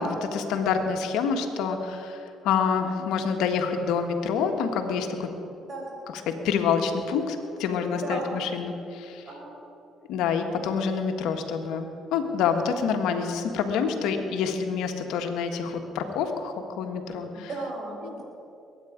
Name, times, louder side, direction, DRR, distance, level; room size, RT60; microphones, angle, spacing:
voice 1, 0.0-5.3 6.3-9.2 10.1-17.5, left 6 dB, 80° left, 5 dB, 1.4 m, -27 dB
voice 2, 2.7-3.1 5.6-6.0 7.9-8.3 9.3-9.6 17.3-18.2, right 3 dB, 50° right, -1 dB, 4.2 m, -37 dB
21.5 x 9.2 x 5.0 m, 2.7 s
supercardioid pair, 70°, 0 cm